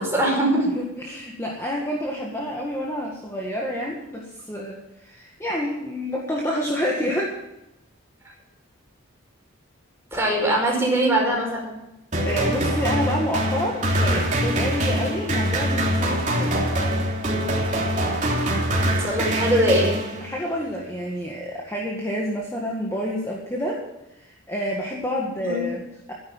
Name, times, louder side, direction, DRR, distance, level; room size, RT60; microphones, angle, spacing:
voice 1, 0.0-0.7 10.1-11.8 19.0-20.1 25.4-25.6, right 1 dB, 10° right, -2 dB, 5.3 m, -22 dB
voice 2, 0.6-7.3 12.3-16.7 20.2-23.8 24.2-26.1, equal, 10° left, -2 dB, 1.8 m, -28 dB
sound 1, 12.1-20.5, equal, 35° right, 3.3 m, -23 dB
13.0 x 11.0 x 7.3 m, 0.93 s
head